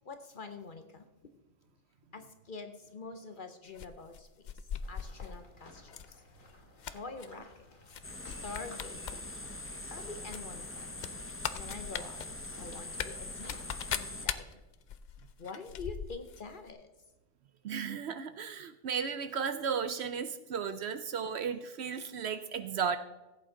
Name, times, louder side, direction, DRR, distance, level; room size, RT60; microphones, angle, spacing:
voice 1, 0.0-1.0 2.1-4.5 4.9-6.2 6.9-7.7 8.2-9.2 9.8-11.0 11.5-12.2 12.6-13.6 13.9-14.6 15.4-16.9, left 4 dB, 45° left, 8 dB, 0.8 m, -46 dB
sound 1, 3.7-5.3 5.9-6.1 6.5-7.3 7.9-8.0 8.3-9.2 9.5-9.6 10.3-16.4 16.7-16.8, left 8 dB, 65° left, 0.4 m, -40 dB
sound 2, 4.8-14.0, left 2 dB, 90° left, 2.3 m, -56 dB
sound 3, 8.0-14.3, left 2 dB, 15° left, 0.5 m, -43 dB
voice 2, 17.6-23.0, right 6 dB, 60° right, 11 dB, 0.8 m, -34 dB
15.5 x 8.4 x 3.8 m, 1.1 s
omnidirectional pair, 1.4 m